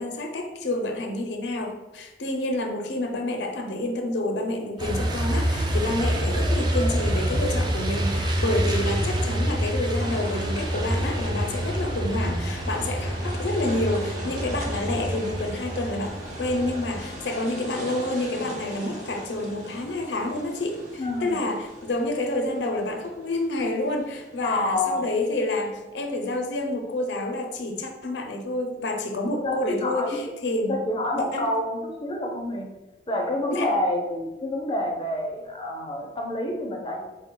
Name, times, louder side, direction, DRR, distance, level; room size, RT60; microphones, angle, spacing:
voice 1, 0.0-30.7 31.1-31.5 33.5-33.7, left 1 dB, 75° left, 4 dB, 0.5 m, -28 dB
Truck, 4.8-17.1, equal, 25° right, 0.4 m, -27 dB
sound 1, 10.0-25.9, equal, 40° right, 0.8 m, -40 dB
voice 2, 21.0-21.4 24.4-25.0 29.4-30.2 30.7-32.7 33.1-37.0, left 1 dB, 30° left, 1 dB, 0.5 m, -28 dB
4.2 x 2.1 x 3.7 m, 1.1 s
head